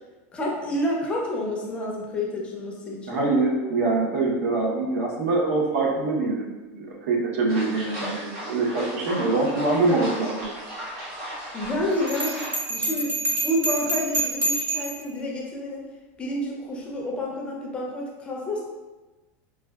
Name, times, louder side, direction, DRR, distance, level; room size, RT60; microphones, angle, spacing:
voice 1, 0.3-3.3 11.5-15.8 16.2-18.6, left 1 dB, 15° left, -2 dB, 0.4 m, -29 dB
voice 2, 3.1-6.5 6.7-10.5, right 3 dB, 75° right, -1 dB, 0.8 m, -24 dB
sound 1, 7.5-12.6, equal, 50° right, 1.0 m, -36 dB
Bell, 12.1-15.0, right 2 dB, 25° right, 0.7 m, -27 dB
4.7 x 2.2 x 2.2 m, 1.2 s
supercardioid pair, 170°, 8 cm